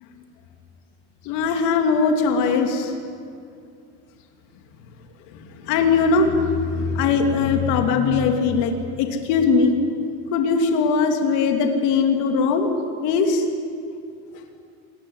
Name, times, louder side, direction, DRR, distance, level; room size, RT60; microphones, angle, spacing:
voice 1, 1.2-2.9 5.5-9.8 10.3-12.7 13.0-13.5, left 5 dB, 70° left, 4 dB, 3.1 m, -20 dB
27.5 x 20.5 x 9.7 m, 2.4 s
cardioid pair, 155°, 31 cm